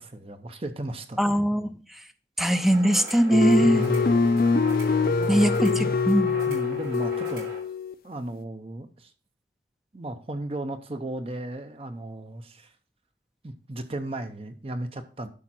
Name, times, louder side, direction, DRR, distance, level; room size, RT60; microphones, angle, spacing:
voice 1, 0.0-1.4 3.6-4.4 5.0-5.9 6.5-7.5 8.0-9.1 9.9-12.7 13.4-15.3, right 1 dB, 30° right, 8 dB, 0.7 m, -35 dB
voice 2, 1.2-1.7 2.4-3.8 5.3-6.4, equal, ahead, 10 dB, 0.4 m, -21 dB
sound 1, 2.4-7.6, right 2 dB, 65° right, 5.1 m, -41 dB
sound 2, 3.3-7.9, left 4 dB, 50° left, 0.5 m, -24 dB
12.0 x 5.1 x 4.3 m, 0.40 s
head